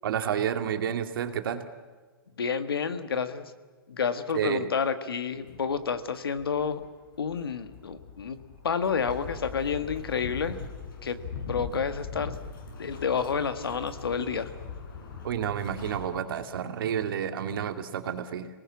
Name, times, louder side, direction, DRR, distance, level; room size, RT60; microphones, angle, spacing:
voice 1, 0.0-1.6 4.3-4.7 15.2-18.5, right 8 dB, 70° right, 7 dB, 2.3 m, -30 dB
voice 2, 2.4-3.5 3.9-6.8 7.2-8.4 8.6-10.6 11.0-11.2 11.5-12.3 12.8-14.5, left 6 dB, 90° left, 10 dB, 1.7 m, -29 dB
sound 1, 5.4-16.1, left 5 dB, 65° left, 7.3 m, -41 dB
26.0 x 19.5 x 8.5 m, 1.4 s
hypercardioid pair, 125°, 12 cm